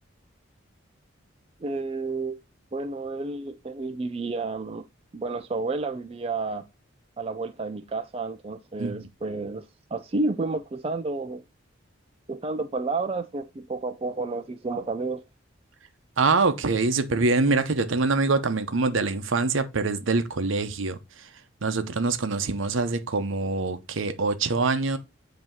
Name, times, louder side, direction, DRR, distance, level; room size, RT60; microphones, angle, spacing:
voice 1, 1.6-2.4 2.7-4.9 5.1-6.6 7.2-9.7 9.9-11.4 12.3-15.2, right 3 dB, 30° right, 0.4 m, -30 dB
voice 2, 16.2-21.0 21.6-25.0, right 3 dB, 75° right, 0.7 m, -24 dB
7.7 x 2.9 x 4.4 m
head